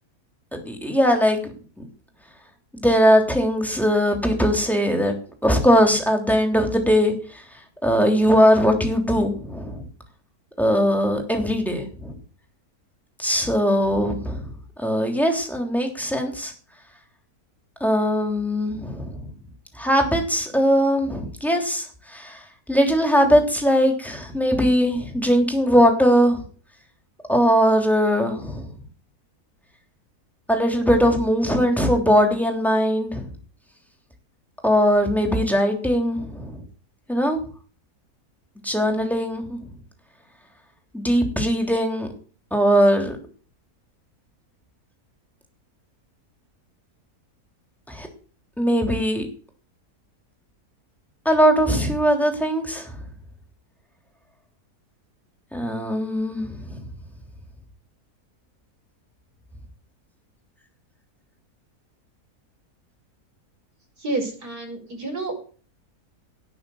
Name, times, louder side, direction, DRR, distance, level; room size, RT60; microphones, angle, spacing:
voice 1, 0.5-1.4 1.8-1.9 2.7-5.1 5.4-7.1 7.8-9.8 10.6-12.1 13.2-14.4 14.8-16.5 17.8-19.3 19.8-21.8 22.1-22.4 22.7-26.4 27.3-28.7 30.5-33.3 34.6-36.6 37.1-37.4 38.6-39.6 40.9-42.1 42.5-43.2 47.9-48.1 48.6-49.3 51.2-52.9 55.5-56.8, equal, ahead, 2 dB, 3.1 m, -20 dB
voice 2, 64.0-65.3, right 2 dB, 90° right, 0 dB, 5.9 m, -29 dB
18.0 x 6.4 x 7.1 m, 0.40 s
omnidirectional pair, 1.6 m